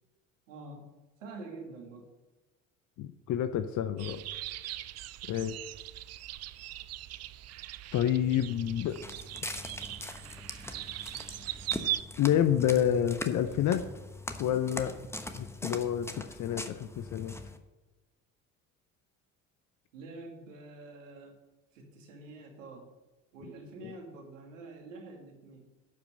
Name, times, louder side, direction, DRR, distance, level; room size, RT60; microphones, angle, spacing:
voice 1, 0.5-0.9 1.2-2.1 19.9-21.4 21.7-22.9 23.3-25.7, right 2 dB, 80° right, 1 dB, 2.3 m, -47 dB
voice 2, 3.0-4.2 5.3-5.6 7.9-9.0 12.2-13.8 14.4-14.9 15.3-16.1 16.4-17.3 23.8-23.9, left 10 dB, 50° left, 10 dB, 0.7 m, -28 dB
sound 1, 4.0-12.0, right 14 dB, 40° right, 0.5 m, -40 dB
Walk footsteps, 8.9-17.6, left 1 dB, 5° left, 1.1 m, -42 dB
12.0 x 5.3 x 6.8 m, 1.2 s
hypercardioid pair, 60°, 38 cm